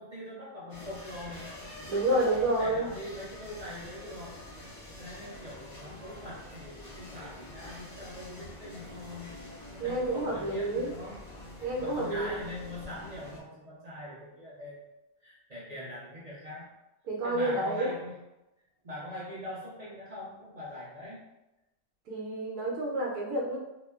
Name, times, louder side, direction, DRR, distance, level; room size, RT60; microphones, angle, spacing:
voice 1, 0.0-1.5 2.0-4.4 5.0-9.4 9.7-11.3 11.8-14.9 15.2-16.7 17.2-18.2 18.8-21.2, left 1 dB, 55° right, -8 dB, 0.4 m, -42 dB
sound 1, 0.7-13.4, left 1 dB, 45° left, 0.6 m, -46 dB
voice 2, 1.9-2.9 9.8-10.9 11.6-12.3 17.1-17.9 22.1-23.6, right 1 dB, 85° right, -2 dB, 1.1 m, -29 dB
2.9 x 2.1 x 2.3 m, 0.95 s
omnidirectional pair, 1.6 m